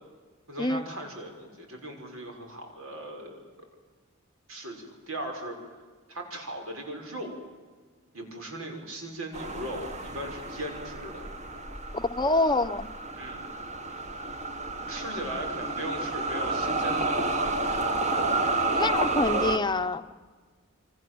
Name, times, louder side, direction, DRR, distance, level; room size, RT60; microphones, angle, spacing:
voice 1, 0.5-3.4 4.5-5.5 6.1-7.4 8.1-11.3 13.2-13.5 14.9-17.8 19.0-19.6, right 1 dB, 80° right, 3 dB, 6.2 m, -38 dB
sound 1, 9.3-19.6, right 2 dB, 35° right, 1.6 m, -30 dB
voice 2, 11.9-12.9 18.7-20.2, left 2 dB, 20° left, 10 dB, 0.8 m, -26 dB
29.0 x 25.0 x 7.9 m, 1.4 s
head